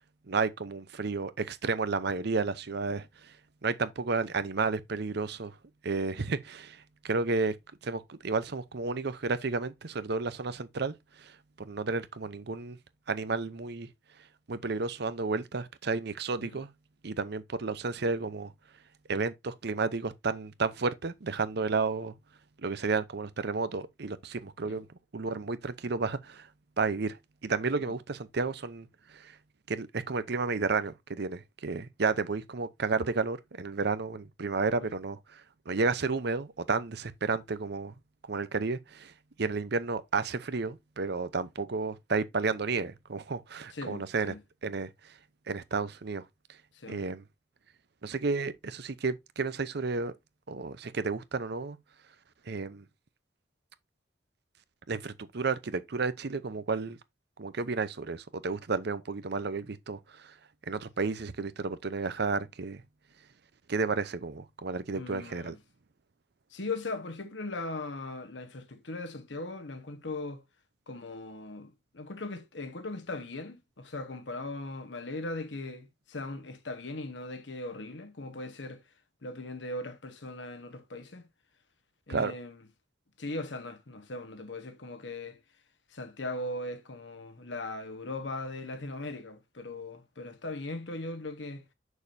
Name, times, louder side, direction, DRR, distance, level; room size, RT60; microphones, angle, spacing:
voice 1, 0.3-3.3 3.6-5.5 5.8-7.6 7.8-12.8 13.1-13.9 14.5-16.7 17.0-18.5 19.1-22.1 22.6-24.9 25.1-26.5 26.8-29.4 29.7-37.9 38.3-39.1 39.4-44.3 44.6-44.9 45.5-46.2 46.9-47.2 48.0-50.1 50.5-51.8 52.5-52.8 54.9-57.0 57.4-60.3 60.7-62.8 63.7-65.5 82.1-82.3, right 4 dB, 65° right, 0.7 m, -32 dB
voice 2, 43.7-44.4 46.7-47.0 64.9-65.6 66.5-70.4 70.9-78.8 79.2-81.3 82.1-82.6 83.2-85.4 85.9-91.6, left 2 dB, 80° left, 1.2 m, -39 dB
7.0 x 6.4 x 2.7 m
head